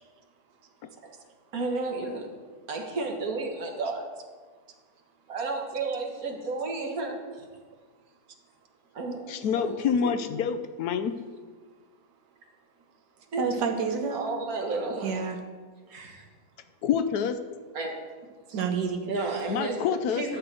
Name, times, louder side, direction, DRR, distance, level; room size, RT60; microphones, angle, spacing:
voice 1, 1.5-2.3 2.7-4.1 5.3-7.2 9.0-9.8 10.0-10.1 13.3-13.4 14.1-15.2 15.9-16.2 17.7-18.0 18.5-18.7 19.1-19.8 20.2-20.4, right 3 dB, 60° right, 1 dB, 1.8 m, -32 dB
voice 2, 9.3-11.3 16.8-17.5 19.5-20.4, left 7 dB, 75° left, 9 dB, 1.1 m, -27 dB
voice 3, 13.4-14.2 15.0-15.4 18.5-19.7, right 5 dB, 85° right, 4 dB, 1.6 m, -30 dB
11.0 x 3.9 x 7.6 m, 1.5 s
omnidirectional pair, 1.7 m